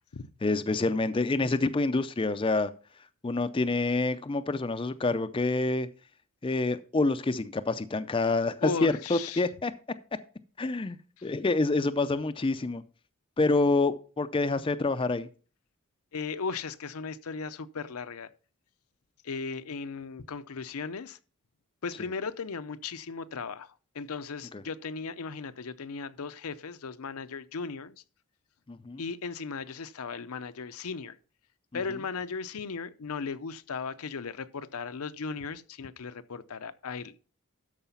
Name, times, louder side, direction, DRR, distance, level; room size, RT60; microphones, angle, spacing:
voice 1, 0.4-2.7 3.2-5.9 6.4-9.7 10.6-11.0 11.2-12.8 13.4-15.3 28.7-29.0, left 3 dB, 25° left, 0.4 m, -27 dB
voice 2, 8.6-9.5 11.2-11.3 16.1-18.3 19.2-21.2 21.8-28.0 29.0-31.2 31.7-37.1, left 5 dB, 75° left, 0.6 m, -37 dB
13.0 x 4.8 x 5.6 m
head